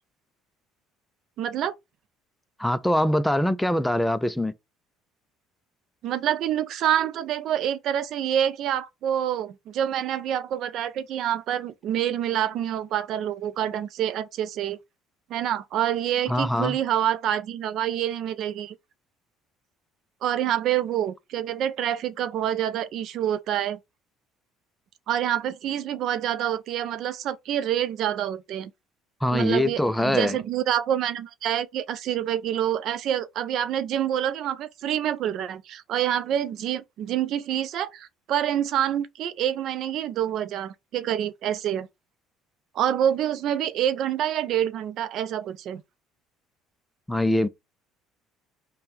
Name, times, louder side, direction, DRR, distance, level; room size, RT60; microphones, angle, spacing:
voice 1, 1.4-1.7 6.0-14.8 15.3-18.7 20.2-23.8 25.1-28.7 29.3-41.9 42.7-45.8, right 10 dB, 60° right, 0.4 m, -27 dB
voice 2, 2.6-4.5 16.3-16.8 29.2-30.4 47.1-47.5, left 1 dB, 5° left, 0.4 m, -23 dB
3.4 x 2.2 x 4.3 m
supercardioid pair, 80°, 0 cm